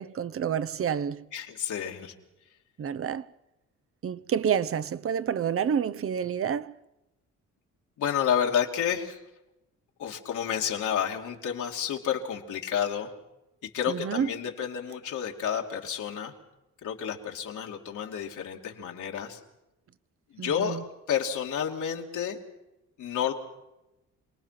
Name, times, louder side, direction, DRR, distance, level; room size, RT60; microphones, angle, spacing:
voice 1, 0.0-1.3 2.8-3.2 4.0-6.7 13.9-14.3 20.4-20.8, right 8 dB, 45° right, 0.9 m, -29 dB
voice 2, 1.3-2.1 8.0-9.2 10.0-13.1 13.6-16.3 16.8-19.4 20.3-20.8 21.1-22.4 23.0-23.3, left 8 dB, 75° left, 2.8 m, -30 dB
27.5 x 19.5 x 6.0 m
cardioid pair, 90°, 30 cm